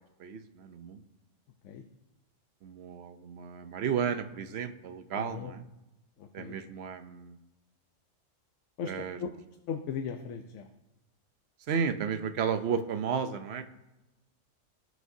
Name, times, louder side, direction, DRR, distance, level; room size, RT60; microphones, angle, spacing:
voice 1, 0.2-1.0 2.6-5.6 6.3-7.4 8.8-9.2 11.7-13.7, right 7 dB, 60° right, 10 dB, 0.8 m, -33 dB
voice 2, 5.1-5.5 6.2-6.6 8.8-9.3 9.7-10.7, left 7 dB, 75° left, 6 dB, 1.0 m, -37 dB
17.5 x 6.3 x 2.7 m, 0.99 s
omnidirectional pair, 1.3 m